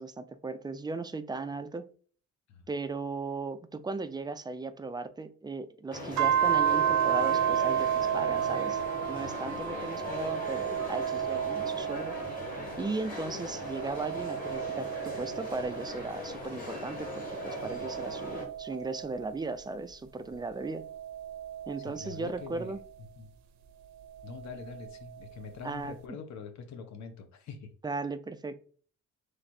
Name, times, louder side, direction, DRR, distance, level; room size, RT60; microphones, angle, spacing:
voice 1, 0.0-1.9 2.7-8.8 9.1-12.2 12.8-20.8 21.7-22.8 25.6-26.0 27.8-28.5, right 3 dB, 15° right, 10 dB, 0.4 m, -37 dB
sound 1, 5.9-18.5, left 2 dB, 30° left, 1.9 m, -40 dB
sound 2, 6.2-12.9 13.3-16.2 16.8-19.6 20.3-22.8 24.1-25.2, right 9 dB, 70° right, 0.6 m, -32 dB
voice 2, 21.8-22.8 23.2-23.3 24.2-27.7, left 5 dB, 70° left, 7 dB, 0.9 m, -44 dB
3.2 x 3.1 x 4.3 m, 0.43 s
cardioid pair, 95°, 29 cm